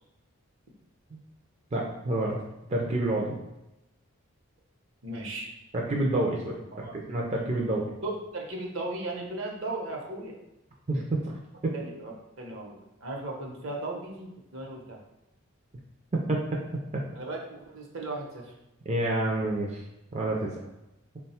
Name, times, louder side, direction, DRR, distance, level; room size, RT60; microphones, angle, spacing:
voice 1, 1.7-2.4 2.7-3.4 5.7-7.9 10.9-11.3 11.6-11.7 16.1-16.6 18.9-19.8 20.1-20.5, right 1 dB, 30° right, -2 dB, 0.4 m, -28 dB
voice 2, 5.0-5.5 6.3-6.4 6.7-7.0 8.0-10.3 11.7-12.1 12.4-15.0 17.1-18.5 20.6-20.7, right 2 dB, 65° right, 0 dB, 0.8 m, -36 dB
3.8 x 2.2 x 4.2 m, 0.92 s
head